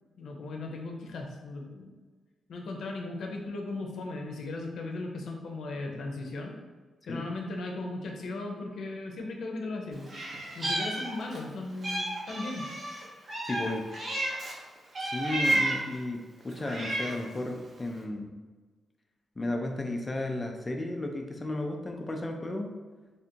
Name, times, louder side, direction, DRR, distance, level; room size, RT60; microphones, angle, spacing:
voice 1, 0.2-1.9 2.5-6.5 7.1-10.1 10.5-12.7, left 2 dB, 65° left, 1 dB, 0.7 m, -37 dB
Meow, 10.1-11.5 11.8-14.6 14.9-15.9 16.5-17.3, right 1 dB, 35° right, 0.8 m, -32 dB
voice 2, 13.4-13.8 15.0-18.3 19.4-22.7, left 2 dB, 20° left, 3 dB, 0.4 m, -34 dB
3.4 x 2.6 x 4.3 m, 1.3 s
wide cardioid pair, 160°, 0 cm